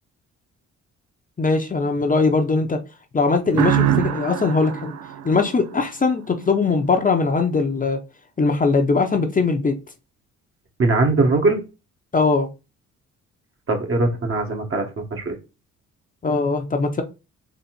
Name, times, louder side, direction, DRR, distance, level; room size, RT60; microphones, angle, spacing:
voice 1, 1.4-2.8 3.1-4.9 5.2-8.0 8.4-9.8 12.1-12.5 16.2-17.0, left 4 dB, 25° left, 4 dB, 0.8 m, -20 dB
sound 1, 3.5-6.2, right 10 dB, 75° right, 0.6 m, -24 dB
voice 2, 10.8-11.6 13.7-15.4, right 3 dB, 45° right, 2 dB, 1.6 m, -20 dB
4.1 x 3.0 x 4.4 m, 0.29 s
cardioid pair, 90°, 30 cm